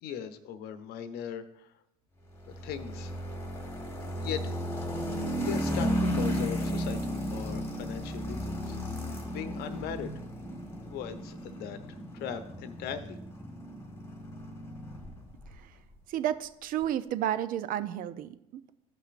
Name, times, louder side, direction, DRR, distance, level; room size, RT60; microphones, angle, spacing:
voice 1, 0.0-1.8 2.6-3.1 4.0-4.6 5.4-8.8 9.1-10.1 10.8-13.2, left 8 dB, 55° left, 10 dB, 0.9 m, -39 dB
sound 1, 2.4-15.6, equal, 15° left, 1.5 m, -34 dB
voice 2, 16.1-18.7, right 11 dB, 45° right, 14 dB, 0.6 m, -32 dB
14.5 x 5.6 x 2.5 m, 0.80 s
hypercardioid pair, 80°, 19 cm